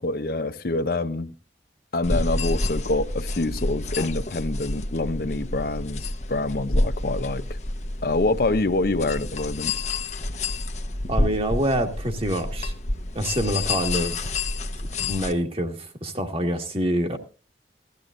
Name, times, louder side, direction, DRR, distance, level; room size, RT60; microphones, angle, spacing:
voice 1, 0.0-1.3 1.9-7.6 8.0-9.7, left 2 dB, 55° left, 0.7 m, -26 dB
sound 1, 2.0-15.3, left 2 dB, 40° left, 1.0 m, -29 dB
voice 2, 11.1-12.7 13.1-14.3 15.0-17.2, equal, 30° right, 1.7 m, -26 dB
17.5 x 14.0 x 2.5 m
head